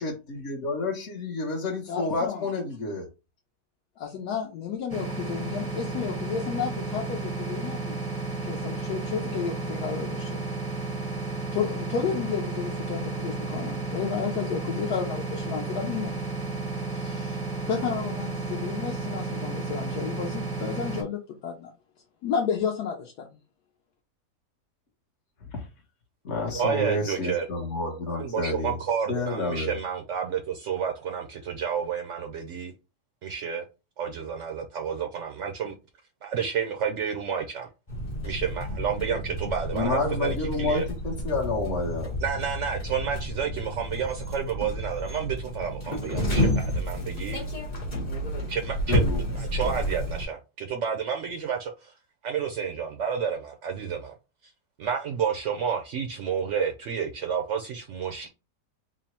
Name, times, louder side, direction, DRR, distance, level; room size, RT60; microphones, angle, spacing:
voice 1, 0.0-3.1 25.5-25.6 26.2-28.7 29.1-29.8 39.7-42.1 48.9-49.2, left 2 dB, 50° left, 1.0 m, -29 dB
voice 2, 1.9-2.5 4.0-8.0 8.5-10.4 11.5-16.2 16.9-17.4 17.7-21.7 22.2-23.3, left 7 dB, 75° left, 1.2 m, -32 dB
sound 1, 4.9-21.0, right 3 dB, 10° left, 0.4 m, -32 dB
voice 3, 26.5-27.5 28.1-32.7 33.2-33.6 34.0-35.8 36.2-37.7 38.2-40.9 42.2-47.4 48.5-51.9 52.2-54.1 54.8-58.3, right 7 dB, 70° right, 0.7 m, -30 dB
sound 2, 37.9-50.3, equal, 30° left, 0.8 m, -30 dB
3.7 x 2.0 x 4.1 m
omnidirectional pair, 1.8 m